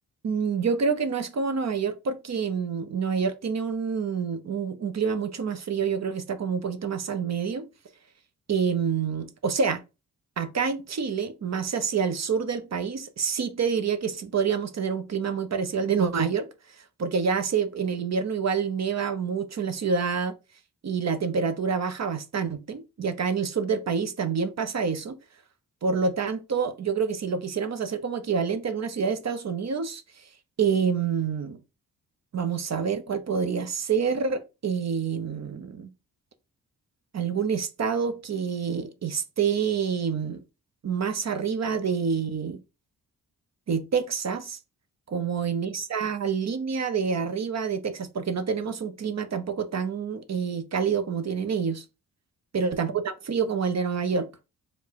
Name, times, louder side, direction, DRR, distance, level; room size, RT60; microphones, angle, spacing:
voice 1, 0.2-7.7 8.5-9.8 10.4-16.5 17.0-20.3 20.8-25.2 25.8-30.0 30.6-31.6 32.3-35.9 37.1-40.4 40.8-42.6 43.7-44.6 45.1-51.8 52.5-54.3, right 6 dB, 50° right, 0.7 m, -27 dB
4.4 x 2.3 x 4.5 m
cardioid pair, 65°, 35 cm